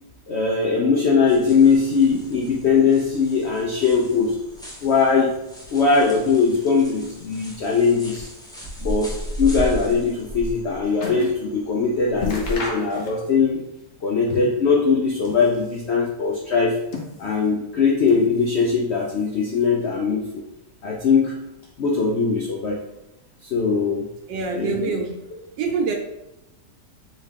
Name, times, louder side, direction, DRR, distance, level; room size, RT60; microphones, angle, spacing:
voice 1, 0.3-4.4 4.8-5.3 5.7-8.3 8.8-13.6 14.0-16.8 17.2-20.4 20.8-21.4 21.8-22.8 23.4-24.1 24.5-24.8, left 5 dB, 75° left, -2 dB, 0.6 m, -20 dB
sound 1, 1.3-12.6, equal, 5° left, 0.5 m, -35 dB
sound 2, 10.3-11.4 11.8-11.9 12.2-13.5 13.7-14.7 15.1-15.9 16.5-17.6 18.0-18.7 19.0-19.8 20.5-20.6, left 3 dB, 55° left, 1.0 m, -36 dB
voice 2, 24.3-25.1 25.6-25.9, right 4 dB, 85° right, 3 dB, 1.4 m, -25 dB
4.3 x 3.0 x 3.5 m, 0.90 s
omnidirectional pair, 1.8 m